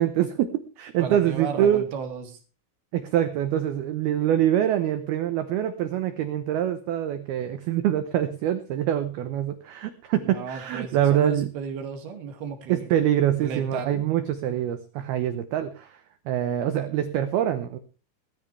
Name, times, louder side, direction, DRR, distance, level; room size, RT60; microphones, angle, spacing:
voice 1, 0.0-1.9 2.9-11.5 12.7-17.8, right 11 dB, 85° right, 9 dB, 2.2 m, -25 dB
voice 2, 1.0-2.4 10.2-12.9 13.4-14.1, right 6 dB, 55° right, 5 dB, 3.7 m, -34 dB
19.0 x 13.5 x 3.4 m, 0.33 s
omnidirectional pair, 5.9 m